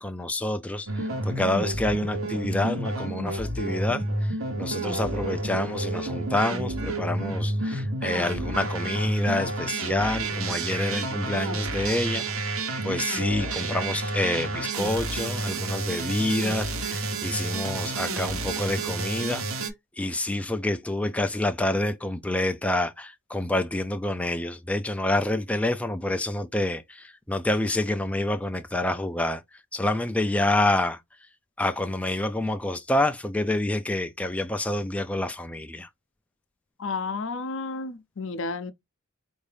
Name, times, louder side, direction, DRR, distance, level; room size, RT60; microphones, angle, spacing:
voice 1, 0.0-19.4 20.0-29.4 29.7-31.0 31.6-35.9, left 1 dB, 5° left, 0.3 m, -28 dB
sound 1, 0.9-19.7, right 2 dB, 80° right, 1.1 m, -30 dB
voice 2, 36.8-38.7, left 3 dB, 65° left, 0.6 m, -32 dB
4.6 x 2.6 x 3.3 m
head